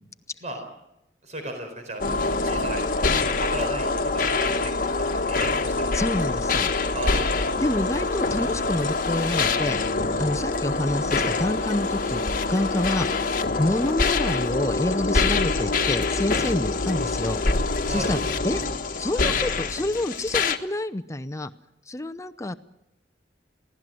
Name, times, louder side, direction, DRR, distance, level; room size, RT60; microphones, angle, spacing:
voice 1, 1.2-2.8 3.3-6.0 6.9-7.5 17.8-18.2, right 1 dB, 45° right, 5 dB, 4.4 m, -35 dB
sound 1, 2.0-20.6, left 3 dB, 50° left, 1.3 m, -25 dB
voice 2, 5.9-6.7 7.6-9.8 10.2-12.2 12.5-13.1 13.6-17.4 17.9-18.2 18.4-18.6 19.0-21.5 21.9-22.5, left 1 dB, 15° left, 9 dB, 0.7 m, -27 dB
23.0 x 16.5 x 7.8 m, 0.87 s
head